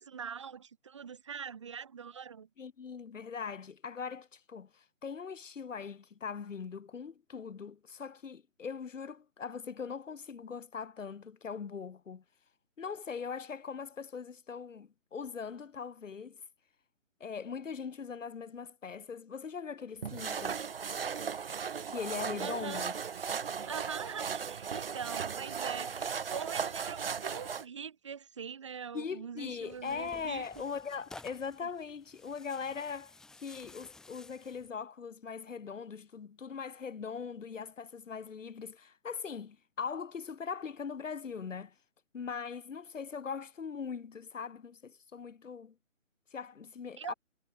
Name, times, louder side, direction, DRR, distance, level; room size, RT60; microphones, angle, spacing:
voice 1, 0.0-2.5 22.4-22.9 23.7-30.5 47.0-47.1, right 7 dB, 25° right, 1.1 m, -43 dB
voice 2, 2.6-12.2 12.8-16.4 17.2-20.6 21.9-22.9 28.9-41.7 42.1-45.7 46.3-47.1, left 6 dB, 70° left, 1.5 m, -41 dB
sound 1, 20.0-27.6, right 6 dB, 45° right, 1.0 m, -37 dB
Tearing, 29.4-34.7, left 3 dB, ahead, 1.5 m, -54 dB
hypercardioid pair, 170°, 39 cm